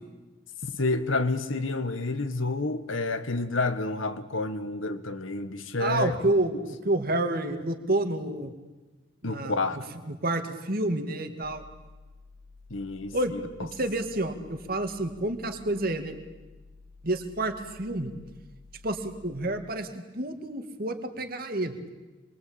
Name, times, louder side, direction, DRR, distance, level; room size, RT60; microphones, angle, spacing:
voice 1, 0.6-6.2 9.2-9.9 12.7-13.4, left 3 dB, 85° left, 9 dB, 1.7 m, -29 dB
voice 2, 5.8-8.5 9.2-11.6 13.1-13.3 13.6-16.1 17.0-18.1 18.8-21.8, right 2 dB, 50° right, 6 dB, 2.3 m, -29 dB
sound 1, 11.4-19.4, left 3 dB, 35° left, 2.4 m, -52 dB
27.5 x 23.0 x 8.9 m, 1.2 s
head